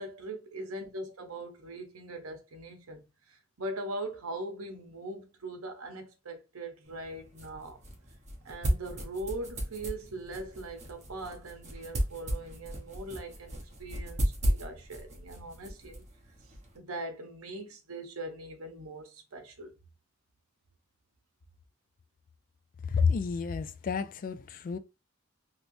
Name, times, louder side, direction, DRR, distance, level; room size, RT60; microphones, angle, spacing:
voice 1, 0.0-7.8 8.4-16.1 16.7-19.7, right 2 dB, 80° right, 0.8 m, -41 dB
sound 1, 6.9-16.8, equal, 35° right, 0.9 m, -35 dB
voice 2, 22.8-24.8, left 5 dB, 40° left, 0.3 m, -30 dB
3.2 x 2.9 x 2.6 m
head